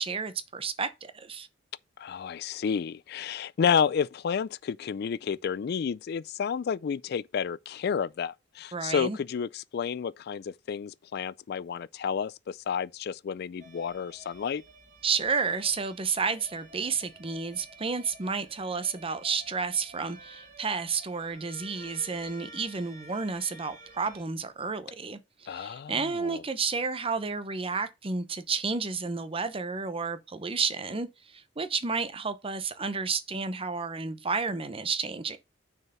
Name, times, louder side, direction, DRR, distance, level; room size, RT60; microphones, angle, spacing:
voice 1, 0.0-1.5 8.7-9.2 15.0-35.4, right 5 dB, 30° right, 0.8 m, -31 dB
voice 2, 2.0-14.6 25.5-26.4, left 7 dB, 55° left, 0.3 m, -31 dB
sound 1, 13.6-24.2, right 2 dB, 45° right, 1.7 m, -51 dB
6.5 x 4.6 x 5.4 m
head